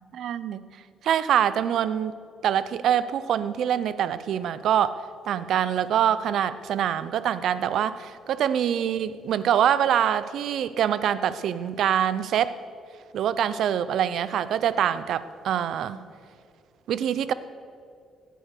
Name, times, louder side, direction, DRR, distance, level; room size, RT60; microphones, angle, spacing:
voice 1, 0.1-0.6 1.0-2.1 2.4-5.0 5.3-12.6 13.1-16.0 16.9-17.3, right 9 dB, 75° right, 15 dB, 0.6 m, -24 dB
17.5 x 10.5 x 6.7 m, 2.3 s
cardioid pair, 90°, 0 cm